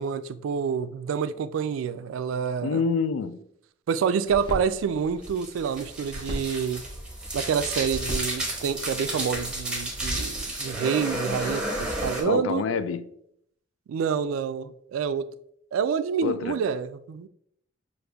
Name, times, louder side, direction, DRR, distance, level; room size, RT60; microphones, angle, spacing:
voice 1, 0.0-2.8 3.9-6.8 7.3-12.6 13.9-15.2 15.7-17.3, right 7 dB, 85° right, 0.3 m, -28 dB
voice 2, 2.6-3.4 12.2-13.1 16.2-16.6, left 5 dB, 80° left, 0.3 m, -27 dB
sound 1, 4.2-9.7, equal, 25° left, 1.1 m, -39 dB
sound 2, 5.2-12.2, right 1 dB, 5° right, 0.9 m, -32 dB
6.4 x 2.6 x 2.3 m
head